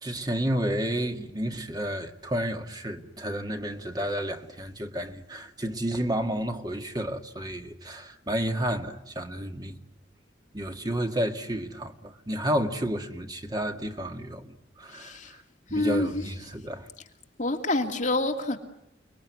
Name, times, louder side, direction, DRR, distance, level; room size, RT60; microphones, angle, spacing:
voice 1, 0.0-9.8 10.5-15.4 15.7-16.9, equal, 20° right, 2.0 m, -31 dB
voice 2, 14.9-15.3 15.7-16.2 17.4-18.6, left 2 dB, 40° left, 2.5 m, -27 dB
29.5 x 21.0 x 9.6 m
head